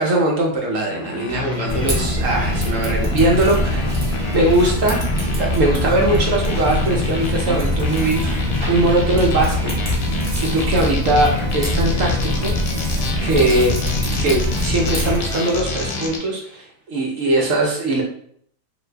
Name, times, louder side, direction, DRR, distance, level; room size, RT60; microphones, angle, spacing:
voice 1, 0.0-5.1 5.4-9.8 10.1-12.5 13.2-13.8 14.2-18.0, right 1 dB, 65° right, -1 dB, 0.8 m, -20 dB
sound 1, 0.9-16.2, left 4 dB, 85° left, 1.4 m, -32 dB
sound 2, 1.3-16.1, left 2 dB, 5° right, 1.1 m, -30 dB
Typing, 1.7-15.2, left 1 dB, 35° right, 0.4 m, -23 dB
2.8 x 2.5 x 3.2 m, 0.64 s
omnidirectional pair, 1.9 m